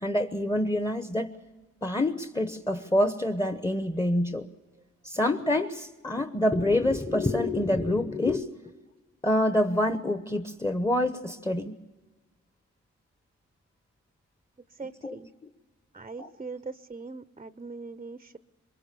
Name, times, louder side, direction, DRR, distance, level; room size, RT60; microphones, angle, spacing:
voice 1, 0.0-1.3 1.8-4.5 5.0-8.5 9.2-11.7 15.0-15.2 16.2-16.3, left 1 dB, 15° left, 10 dB, 1.0 m, -26 dB
voice 2, 14.7-15.3 15.9-18.4, right 4 dB, 20° right, 13 dB, 0.7 m, -41 dB
23.0 x 22.0 x 6.8 m, 1.3 s
cardioid pair, 60°, 30 cm